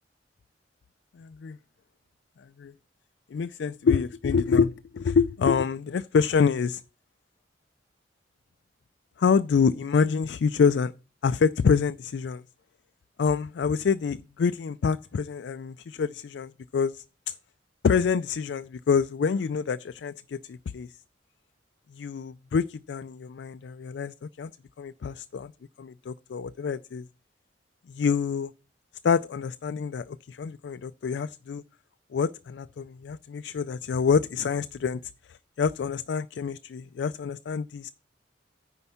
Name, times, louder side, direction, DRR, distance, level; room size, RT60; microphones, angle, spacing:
voice 1, 1.2-1.6 2.6-2.7 3.3-6.8 9.2-10.9 11.2-12.4 13.2-17.4 17.8-20.9 21.9-24.5 24.8-25.5 25.8-27.1 27.9-28.5 29.0-31.6 32.1-35.0 35.3-37.9, left 6 dB, 70° left, 0.4 m, -26 dB
9.7 x 4.6 x 6.9 m
head